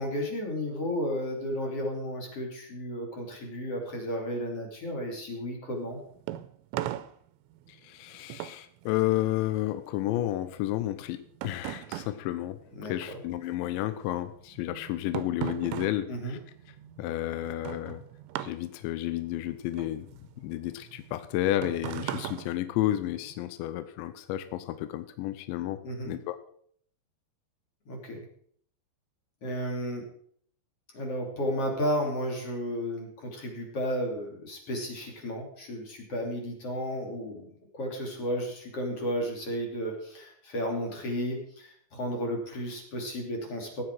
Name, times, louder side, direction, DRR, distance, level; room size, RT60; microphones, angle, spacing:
voice 1, 0.0-6.0 12.8-13.0 16.1-16.4 25.8-26.1 27.9-28.2 29.4-30.1 30.9-37.5 37.7-43.8, equal, 35° left, 1 dB, 3.2 m, -33 dB
sound 1, 5.8-13.4 13.7-23.4, right 13 dB, 80° right, 2.9 m, -40 dB
voice 2, 7.7-12.6 12.9-16.4 17.0-18.0 18.4-20.1 20.4-25.8 26.1-26.4, left 14 dB, 85° left, 11 dB, 3.0 m, -31 dB
16.5 x 9.8 x 4.6 m, 0.63 s
omnidirectional pair, 5.3 m